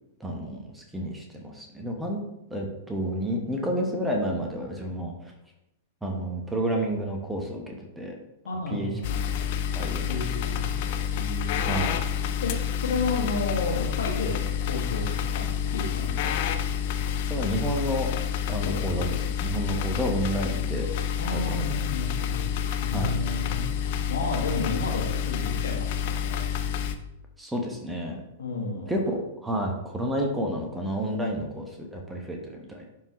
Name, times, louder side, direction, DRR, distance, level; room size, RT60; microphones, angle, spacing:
voice 1, 0.2-2.2 2.5-5.3 6.0-8.1 8.7-8.9 9.4-9.5 9.7-10.3 10.8-11.0 11.7-12.0 17.3-18.1 18.5-20.9 21.3-21.6 22.9-23.1 27.4-28.2 28.9-32.9, right 1 dB, 10° right, 1 dB, 1.2 m, -30 dB
voice 2, 8.4-9.4 10.1-10.7 11.1-11.6 12.4-15.5 15.7-16.4 18.6-18.8 21.2-22.4 22.8-26.5 28.4-28.9, left 3 dB, 65° left, 0 dB, 2.0 m, -32 dB
sound 1, 9.0-27.0, left 8 dB, 45° left, 0.6 m, -28 dB
11.0 x 4.6 x 3.1 m, 0.88 s
figure-of-eight pair, 100°, 0 cm